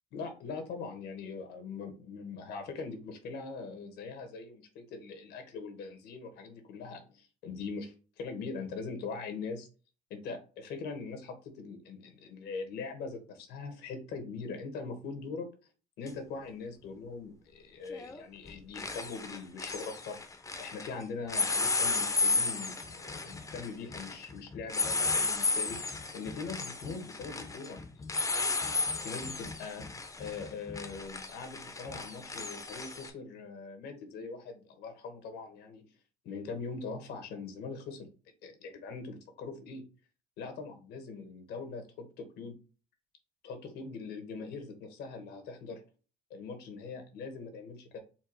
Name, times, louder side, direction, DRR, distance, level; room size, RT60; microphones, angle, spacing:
voice 1, 0.1-9.7 10.1-15.5 16.0-20.2 20.6-28.7 29.0-29.9 30.2-35.9 36.2-38.1 38.4-39.8 40.4-42.6 43.4-45.8 46.3-48.0, left 4 dB, 75° left, 5 dB, 1.3 m, -42 dB
sound 1, 16.1-16.2 17.9-18.2 18.5-20.9 21.3-33.1, left 3 dB, 20° left, 0.7 m, -33 dB
4.4 x 2.4 x 4.6 m, 0.36 s
cardioid pair, 110°, 17 cm